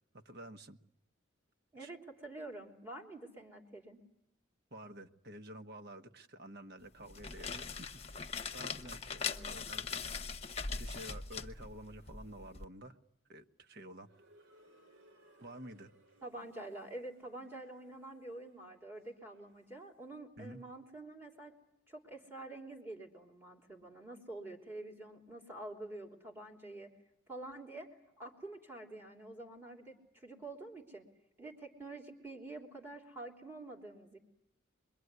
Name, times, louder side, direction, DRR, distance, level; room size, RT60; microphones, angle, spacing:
voice 1, 0.1-0.8 1.8-1.9 4.7-8.2 8.5-9.2 9.5-9.9 10.7-13.0 13.3-14.1 15.4-15.9 20.4-20.6, right 1 dB, 55° right, 6 dB, 1.5 m, -50 dB
voice 2, 1.7-4.0 9.2-9.5 16.2-21.5 21.9-26.9 27.3-27.9 28.2-31.0 31.4-34.2, right 2 dB, 10° right, 1 dB, 3.4 m, -47 dB
sound 1, 7.0-12.6, left 5 dB, 30° left, 1.1 m, -41 dB
sound 2, 14.0-20.0, right 1 dB, 70° right, 5.3 m, -66 dB
27.0 x 22.5 x 9.7 m, 0.79 s
head